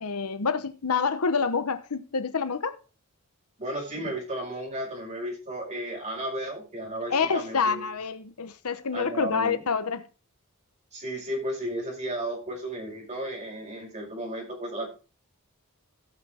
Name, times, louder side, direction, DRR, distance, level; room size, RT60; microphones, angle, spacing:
voice 1, 0.0-2.8 4.0-4.1 7.1-10.1, left 5 dB, 85° left, 0.9 m, -27 dB
voice 2, 3.6-7.8 8.9-9.6 10.9-14.9, right 1 dB, 35° right, 5.2 m, -34 dB
16.5 x 6.2 x 3.5 m
head